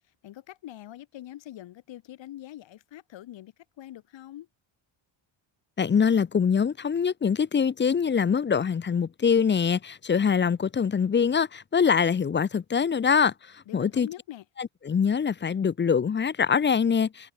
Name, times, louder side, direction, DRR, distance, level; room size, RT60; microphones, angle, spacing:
voice 1, 0.2-4.5 13.7-14.4, left 13 dB, 65° left, 2.7 m, -43 dB
voice 2, 5.8-14.1 14.6-17.3, left 6 dB, 25° left, 0.7 m, -24 dB
cardioid pair, 160°, 47 cm